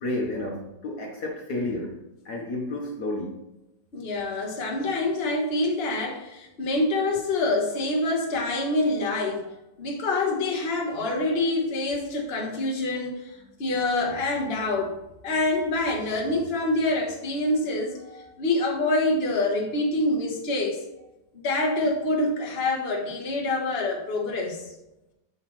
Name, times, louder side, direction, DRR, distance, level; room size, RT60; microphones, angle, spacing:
voice 1, 0.0-1.9 2.2-3.4, left 2 dB, 60° left, 1 dB, 1.6 m, -31 dB
voice 2, 3.9-9.5 9.8-13.2 13.6-15.0 15.2-20.8 21.4-24.6, left 2 dB, 35° left, -1 dB, 1.4 m, -26 dB
7.5 x 6.4 x 3.2 m, 0.93 s
omnidirectional pair, 2.0 m